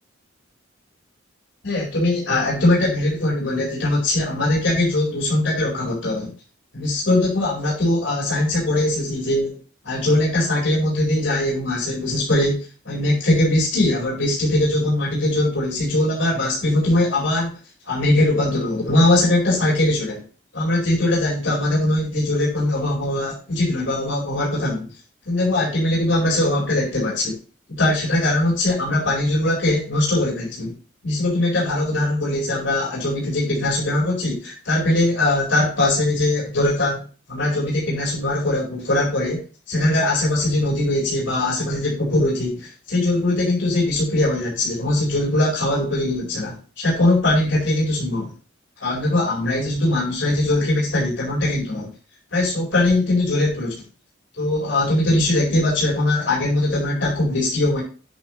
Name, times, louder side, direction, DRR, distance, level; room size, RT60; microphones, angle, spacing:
voice 1, 1.6-6.3 6.7-9.5 9.8-12.6 12.8-17.5 17.9-20.2 20.5-24.9 25.3-27.4 27.8-30.7 31.0-39.4 39.7-48.3 48.8-51.9 52.3-53.8 54.4-57.8, left 1 dB, 65° left, -4 dB, 4.7 m, -21 dB
9.7 x 8.2 x 3.2 m, 0.35 s
head